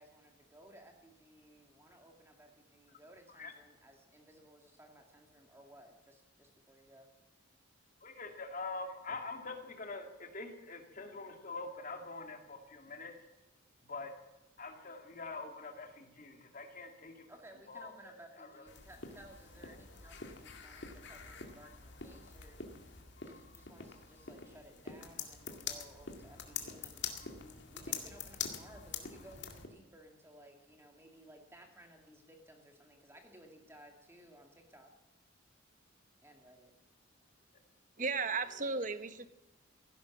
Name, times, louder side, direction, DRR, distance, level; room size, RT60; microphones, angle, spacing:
voice 1, 0.0-7.1 17.3-34.9 36.2-36.7, right 1 dB, 10° right, 3 dB, 2.1 m, -58 dB
voice 2, 8.0-13.1 13.9-14.1 14.6-17.2 17.7-18.6, left 3 dB, 40° left, 4 dB, 2.4 m, -45 dB
sound 1, 18.7-29.7, left 6 dB, 55° left, 2.1 m, -45 dB
voice 3, 38.0-39.3, right 4 dB, 40° right, 11 dB, 0.9 m, -35 dB
16.0 x 11.5 x 7.3 m, 1.0 s
head